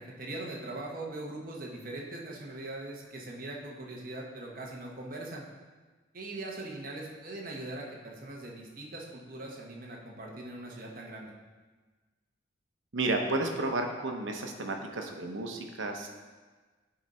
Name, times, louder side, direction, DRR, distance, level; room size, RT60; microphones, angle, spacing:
voice 1, 0.0-5.4 6.1-11.3, right 2 dB, 45° right, -1 dB, 1.1 m, -41 dB
voice 2, 12.9-16.1, right 2 dB, 85° right, 3 dB, 0.9 m, -32 dB
9.8 x 4.0 x 4.3 m, 1.3 s
head